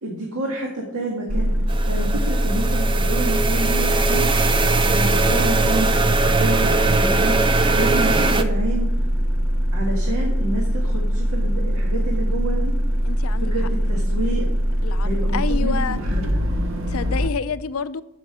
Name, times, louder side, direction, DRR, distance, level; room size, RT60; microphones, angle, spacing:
voice 1, 0.0-1.6 1.9-4.3 4.9-8.9 9.7-12.7 13.4-14.5 15.0-16.2, right 1 dB, 80° right, 1.9 m, -29 dB
sound 1, 1.3-17.3, equal, 60° right, 1.0 m, -22 dB
sound 2, 1.7-8.4, right 3 dB, 20° right, 0.5 m, -21 dB
voice 2, 13.0-13.7 14.8-16.0 16.9-18.0, left 5 dB, 70° left, 0.5 m, -29 dB
12.5 x 5.7 x 6.1 m
head